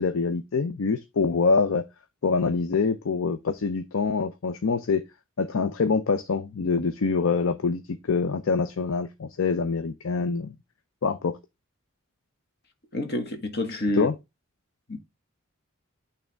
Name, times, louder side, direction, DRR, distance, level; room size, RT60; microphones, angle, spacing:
voice 1, 0.0-1.8 2.2-5.0 5.4-10.6 11.0-11.4 13.9-14.1, left 4 dB, 80° left, 0.5 m, -25 dB
voice 2, 12.9-14.1 14.9-15.0, left 1 dB, 50° left, 1.5 m, -28 dB
8.8 x 3.4 x 3.4 m
head